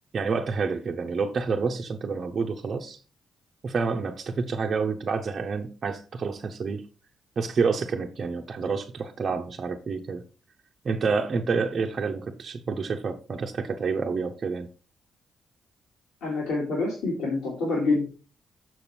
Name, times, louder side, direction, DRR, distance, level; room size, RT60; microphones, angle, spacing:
voice 1, 0.1-3.0 3.6-6.8 7.4-10.2 10.8-14.7, right 5 dB, 50° right, 0.8 m, -28 dB
voice 2, 16.2-18.0, left 3 dB, 80° left, 2.8 m, -26 dB
6.7 x 6.3 x 4.3 m
hypercardioid pair, 45°, 0 cm